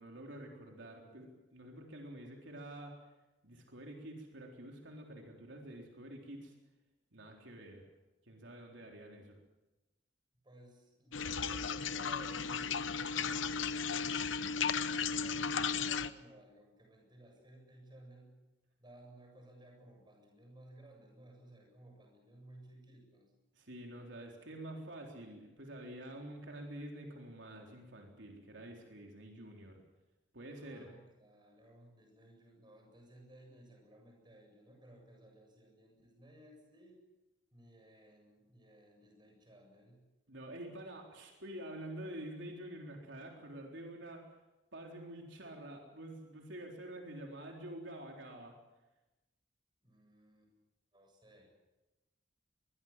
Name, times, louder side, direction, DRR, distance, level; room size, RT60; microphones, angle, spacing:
voice 1, 0.0-2.9 3.4-6.5 7.1-7.9 8.3-9.4 23.5-29.8 30.3-30.9 40.3-44.3 44.7-48.6, right 1 dB, 75° right, 1 dB, 3.8 m, -48 dB
voice 2, 10.4-13.9 14.5-18.4 18.8-23.3 30.5-37.0 37.5-40.1 49.8-50.5 50.9-51.5, right 1 dB, 25° right, 1 dB, 7.7 m, -59 dB
sound 1, 11.1-16.1, left 6 dB, 85° left, 1.0 m, -35 dB
24.0 x 22.0 x 7.5 m, 1.1 s
head